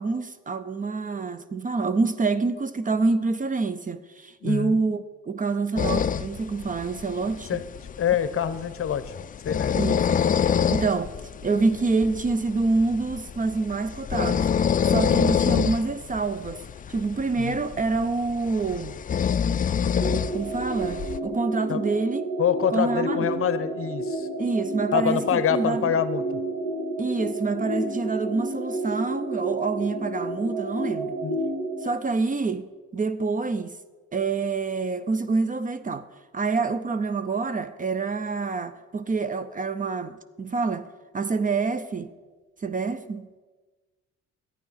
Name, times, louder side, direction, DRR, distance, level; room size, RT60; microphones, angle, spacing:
voice 1, 0.0-7.6 9.8-10.2 10.7-11.1 11.4-14.5 14.8-16.6 16.9-19.0 20.3-22.2 22.7-23.4 24.4-26.0 27.0-31.1 31.8-33.8 34.1-36.1 36.3-40.9 41.1-42.1 42.6-43.4, right 3 dB, 25° right, 0.5 m, -27 dB
voice 2, 4.4-4.8 7.5-7.6 8.0-9.0 9.4-9.8 17.4-17.6 21.7-21.8 22.4-24.3 24.9-26.4 31.2-31.4, left 9 dB, 45° left, 0.8 m, -25 dB
sound 1, 5.8-21.2, left 8 dB, 30° left, 0.4 m, -27 dB
sound 2, 20.0-31.9, right 2 dB, 50° right, 2.4 m, -31 dB
11.5 x 9.2 x 5.6 m
cardioid pair, 90°, 30 cm